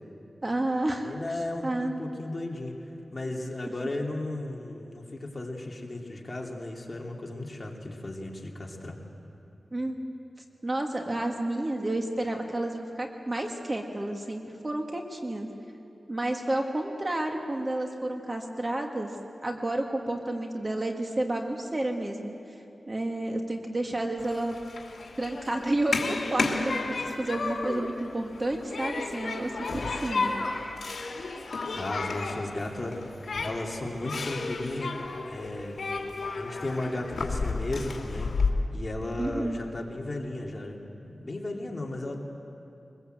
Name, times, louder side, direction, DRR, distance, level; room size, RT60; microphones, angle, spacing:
voice 1, 0.4-1.1 1.6-2.0 9.7-10.0 10.6-15.5 16.1-19.1 19.4-22.3 22.9-24.6 25.2-26.8 27.2-30.4 39.2-39.6, right 1 dB, 30° right, 2 dB, 1.9 m, -30 dB
voice 2, 1.0-2.7 3.1-9.0 31.7-33.2 33.4-35.0 35.3-35.8 36.3-38.3 38.7-42.2, left 2 dB, 35° left, -1 dB, 2.8 m, -35 dB
Human group actions, 24.2-38.5, left 3 dB, 75° left, 2.4 m, -33 dB
23.0 x 21.5 x 8.0 m, 2.8 s
wide cardioid pair, 95°, 0 cm